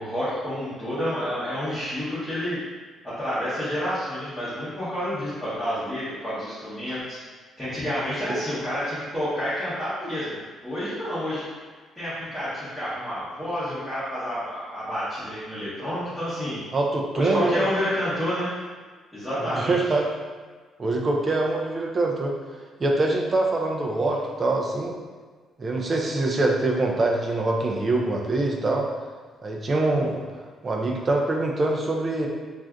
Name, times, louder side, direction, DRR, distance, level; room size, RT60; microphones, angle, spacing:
voice 1, 0.0-2.6 3.0-7.2 7.6-10.4 10.6-11.5 12.0-16.6 17.1-18.6 19.1-19.8, equal, 5° left, -14 dB, 0.9 m, -29 dB
voice 2, 16.7-17.7 19.4-20.0 20.8-22.3 22.8-24.9 25.6-28.9 29.4-30.2 30.6-32.3, right 2 dB, 25° right, 0 dB, 0.4 m, -24 dB
2.5 x 2.4 x 3.3 m, 1.5 s
cardioid pair, 150°, 0 cm